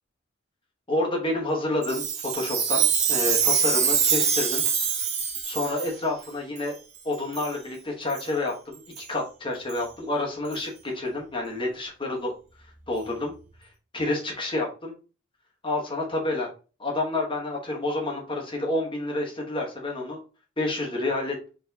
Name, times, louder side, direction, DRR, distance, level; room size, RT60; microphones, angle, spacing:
voice 1, 0.9-4.6 5.4-6.8 7.0-12.3 12.9-13.3 13.9-14.9 15.6-16.5 16.8-20.2 20.6-21.4, left 2 dB, 25° left, 0 dB, 1.1 m, -29 dB
Chime, 1.8-5.9 6.6-6.7 7.3-7.5 8.1-8.3 9.0-9.1 9.7-9.8 10.5-10.6, right 7 dB, 35° right, 0.7 m, -24 dB
4.3 x 3.4 x 2.7 m, 0.35 s
head